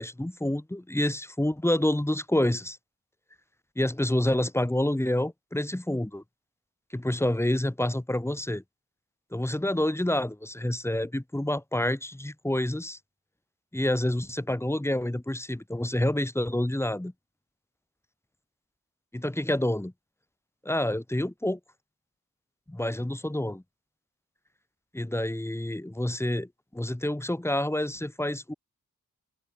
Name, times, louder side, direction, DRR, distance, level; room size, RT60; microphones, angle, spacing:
voice 1, 0.0-2.8 3.8-6.2 6.9-8.6 9.3-13.0 13.7-17.1 19.1-19.9 20.6-21.6 22.7-23.6 24.9-28.5, left 1 dB, 5° left, 2.6 m, -28 dB
wide cardioid pair, 180°, 34 cm